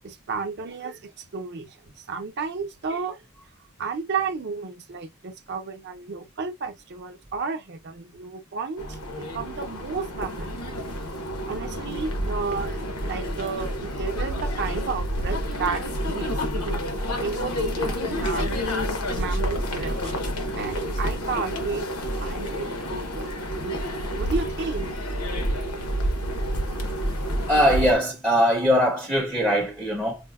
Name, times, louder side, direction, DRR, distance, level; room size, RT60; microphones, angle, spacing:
voice 1, 0.0-1.7 2.1-3.2 3.8-8.9 9.2-10.5 11.5-16.4 16.6-18.6 19.1-20.2 20.6-23.8 24.2-24.9, right 4 dB, 50° right, 0.6 m, -32 dB
sound 1, 8.8-27.9, equal, 85° left, 0.9 m, -29 dB
voice 2, 27.5-30.2, equal, 5° right, 0.5 m, -21 dB
4.8 x 2.1 x 2.3 m
head